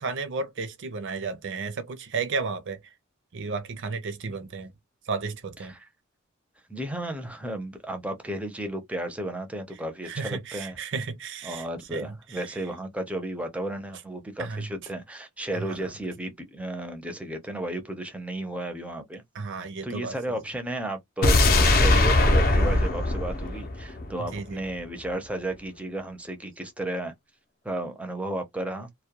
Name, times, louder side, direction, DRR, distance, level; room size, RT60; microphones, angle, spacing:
voice 1, 0.0-2.8 3.3-4.7 5.1-5.7 10.0-12.6 14.4-14.7 15.5-15.8 19.3-20.1 24.2-24.6, right 4 dB, 60° right, 0.5 m, -33 dB
voice 2, 6.7-10.8 11.4-19.2 19.8-27.1 27.6-28.9, right 1 dB, 5° right, 0.5 m, -33 dB
sound 1, 21.2-24.4 24.7-24.8, left 2 dB, 45° left, 0.6 m, -21 dB
2.3 x 2.1 x 2.8 m
head